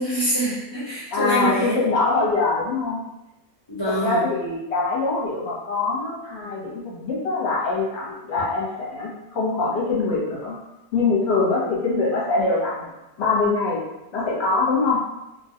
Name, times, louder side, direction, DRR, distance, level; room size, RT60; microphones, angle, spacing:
voice 1, 0.0-1.8 3.7-4.2, right 1 dB, 20° left, -10 dB, 0.9 m, -25 dB
voice 2, 1.1-3.0 3.9-10.5 10.9-12.9 13.2-13.8 14.1-15.0, left 3 dB, 50° left, -5 dB, 1.1 m, -23 dB
3.0 x 2.2 x 2.8 m, 0.95 s
omnidirectional pair, 1.6 m